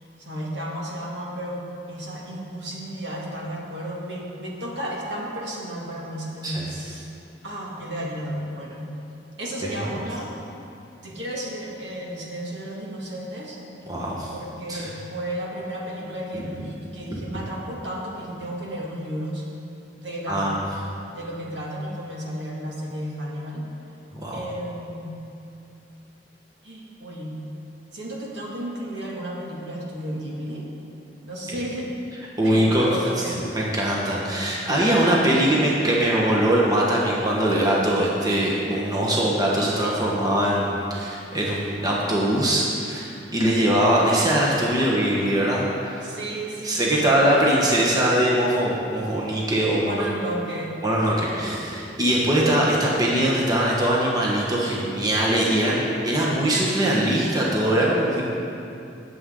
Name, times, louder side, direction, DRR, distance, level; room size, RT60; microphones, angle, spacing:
voice 1, 0.0-7.1 7.4-8.9 9.4-10.3 11.0-13.6 14.3-19.5 20.0-20.6 21.1-23.7 24.3-25.2 26.6-27.4 27.9-30.7 31.2-31.9 32.4-33.6 46.0-47.2 49.8-50.8, right 1 dB, 70° right, -3 dB, 2.3 m, -33 dB
voice 2, 13.9-14.3 14.7-14.8 20.3-20.6 24.1-24.4 32.4-32.9 33.5-46.1 46.6-50.0 50.8-58.2, right 1 dB, 20° right, -4 dB, 1.5 m, -22 dB
20.0 x 7.8 x 3.9 m, 2.7 s
head